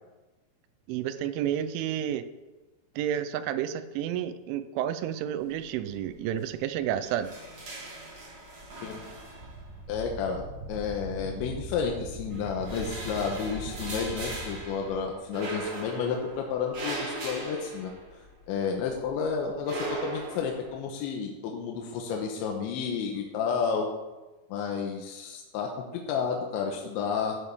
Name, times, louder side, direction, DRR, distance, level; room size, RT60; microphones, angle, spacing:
voice 1, 0.9-2.3 3.0-7.3, right 10 dB, 90° right, 11 dB, 3.1 m, -30 dB
sound 1, 5.5-6.0 6.3-6.5 6.8-9.9 10.8-11.8 12.2-18.5 18.8-20.8, right 2 dB, 40° right, 3.0 m, -39 dB
Wind, 8.6-15.0, right 1 dB, 55° right, 2.6 m, -41 dB
voice 2, 9.9-17.9 18.5-23.9 24.5-27.4, left 6 dB, 80° left, 1 dB, 3.1 m, -31 dB
13.0 x 8.1 x 3.5 m, 1.1 s
omnidirectional pair, 5.4 m